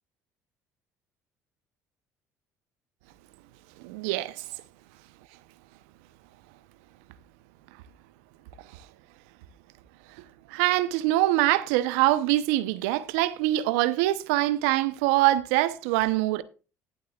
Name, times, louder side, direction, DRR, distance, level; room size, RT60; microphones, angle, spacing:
voice 1, 3.8-4.4 8.7-8.9 10.2-16.4, right 16 dB, 80° right, 0.7 m, -24 dB
19.0 x 8.0 x 2.4 m
hypercardioid pair, 60°, 8 cm